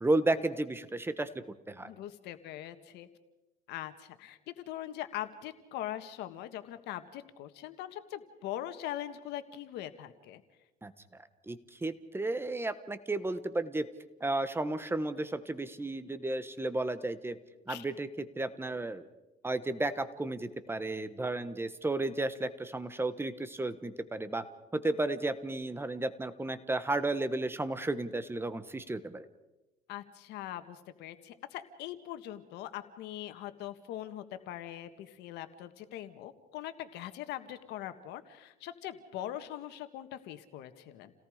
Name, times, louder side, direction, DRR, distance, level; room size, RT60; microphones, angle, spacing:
voice 1, 0.0-1.3 1.7-1.9 10.8-10.9 11.5-13.8 14.2-17.4 17.7-19.1 19.4-24.4 24.7-29.2, right 2 dB, 15° right, 12 dB, 1.4 m, -33 dB
voice 2, 1.8-3.1 3.7-10.4 17.7-17.8 29.9-41.1, left 12 dB, 90° left, 10 dB, 1.6 m, -42 dB
29.5 x 18.0 x 5.1 m, 1.0 s
cardioid pair, 110°, 17 cm